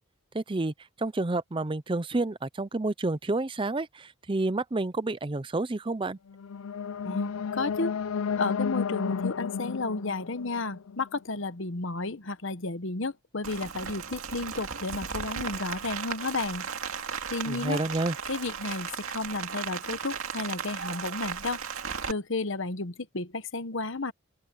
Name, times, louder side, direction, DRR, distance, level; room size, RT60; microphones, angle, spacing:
voice 1, 0.3-6.2 17.5-18.1, right 2 dB, 25° right, 0.5 m, -29 dB
sound 1, 6.3-11.4, left 6 dB, 75° left, 0.5 m, -32 dB
voice 2, 7.0-8.0 8.4-16.7 17.3-17.8 18.3-21.6 22.1-24.1, left 3 dB, 60° left, 1.1 m, -32 dB
Rain, 13.4-22.1, right 6 dB, 75° right, 2.2 m, -36 dB
open air
head